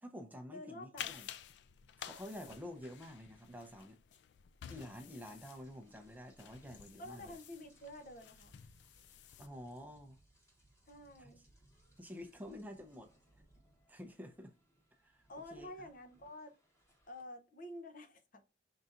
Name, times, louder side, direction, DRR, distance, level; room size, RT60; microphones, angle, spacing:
voice 1, 0.0-1.3 2.0-4.0 4.7-7.3 9.4-10.2 11.2-11.3 12.0-13.1 13.9-14.5 15.0-15.2 15.5-15.7, left 1 dB, 10° right, 0.6 m, -49 dB
voice 2, 0.5-1.1 7.0-8.5 10.9-11.4 15.3-16.5 17.1-18.4, left 1 dB, 50° left, 0.7 m, -49 dB
sound 1, 1.0-9.5, left 9 dB, 70° left, 0.3 m, -52 dB
Rain, 5.4-17.2, right 1 dB, 15° left, 1.3 m, -69 dB
5.5 x 3.9 x 2.5 m
head